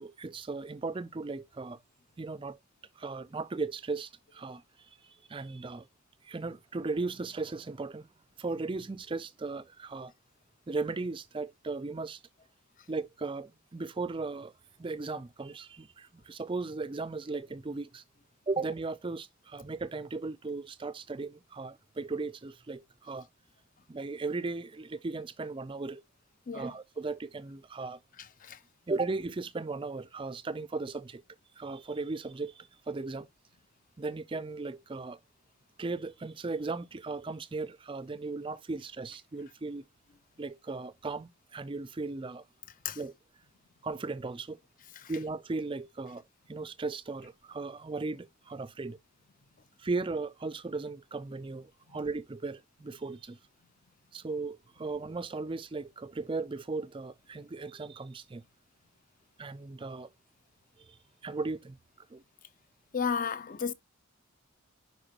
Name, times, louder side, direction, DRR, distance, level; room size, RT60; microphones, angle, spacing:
voice 1, 0.0-1.8 2.2-2.6 3.0-4.6 5.0-5.9 6.2-8.1 8.4-10.1 10.7-12.2 12.9-14.5 14.8-18.0 18.5-23.3 23.9-26.0 26.5-28.0 28.9-31.2 31.6-33.3 34.0-35.2 35.8-39.9 40.4-42.4 43.0-43.1 43.8-44.6 45.1-46.2 46.5-49.0 49.8-53.4 54.1-58.4 59.4-60.1 60.8-61.0 61.2-61.8 62.1-62.2, right 3 dB, 25° right, 0.4 m, -37 dB
voice 2, 62.9-63.7, left 6 dB, 40° left, 0.5 m, -32 dB
10.0 x 4.7 x 2.9 m
head